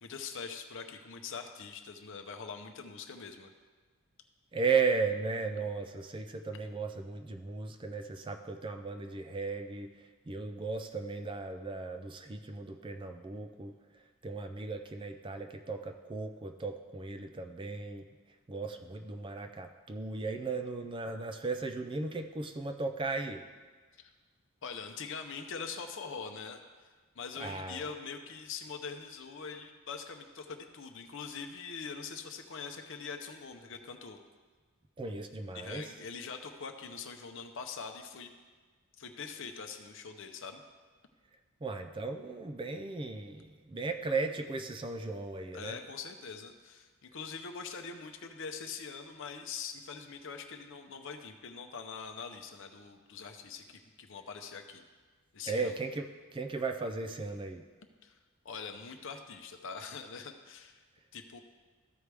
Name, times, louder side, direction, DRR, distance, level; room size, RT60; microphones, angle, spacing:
voice 1, 0.0-3.5 24.0-24.1 24.6-34.2 35.5-38.3 39.0-40.6 45.5-54.8 55.3-55.8 58.0-58.2 58.4-60.8 61.1-61.4, left 5 dB, 55° left, 5 dB, 0.7 m, -43 dB
voice 2, 4.5-18.1 18.5-23.5 27.4-27.8 35.0-35.9 41.6-45.8 55.5-57.7, right 4 dB, 20° right, 6 dB, 0.3 m, -36 dB
14.0 x 4.8 x 3.4 m, 1.4 s
head